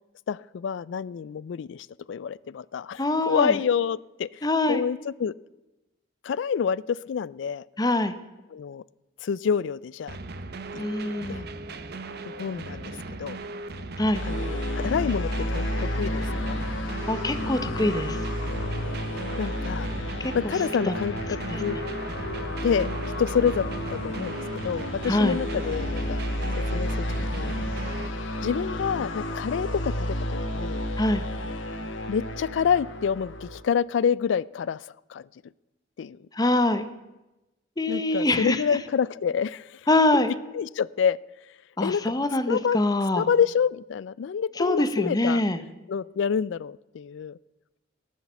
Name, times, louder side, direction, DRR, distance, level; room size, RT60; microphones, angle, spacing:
voice 1, 0.3-4.3 4.7-5.3 6.2-7.6 8.5-8.8 9.2-10.2 10.7-10.8 11.3-11.4 12.4-13.4 14.2-16.6 19.4-19.9 20.3-21.8 22.6-22.9 23.2-26.2 26.7-27.1 27.3-27.5 28.4-30.8 32.1-34.8 35.1-35.3 36.0-36.2 37.9-39.8 40.5-41.2 41.8-42.0 42.5-42.8 43.2-45.4 45.9-47.4, left 7 dB, 70° left, 21 dB, 0.3 m, -27 dB
voice 2, 3.0-3.6 4.4-4.8 7.8-8.2 10.8-11.5 14.0-14.2 17.1-18.2 20.2-20.3 20.9-21.0 21.5-21.8 25.1-25.4 31.0-31.2 36.3-36.9 37.8-38.8 39.9-40.3 41.8-43.3 44.6-45.6, left 2 dB, 20° left, 10 dB, 0.8 m, -24 dB
sound 1, 10.1-28.1, right 2 dB, 55° right, 0.8 m, -38 dB
sound 2, 14.1-33.6, left 1 dB, 85° left, 1.4 m, -31 dB
18.5 x 6.5 x 7.0 m, 1.0 s
head